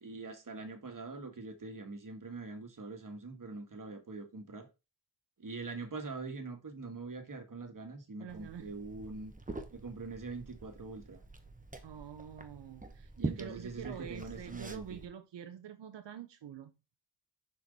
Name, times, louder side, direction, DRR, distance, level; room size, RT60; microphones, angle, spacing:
voice 1, 0.0-4.7 5.4-9.3 9.7-11.2 13.2-15.0, right 3 dB, 50° right, 1.5 m, -43 dB
voice 2, 8.2-8.7 11.8-16.7, right 8 dB, 90° right, 0.6 m, -46 dB
Liquid, 8.3-15.1, right 2 dB, 20° right, 1.0 m, -45 dB
6.1 x 4.4 x 3.9 m
wide cardioid pair, 65°, 41 cm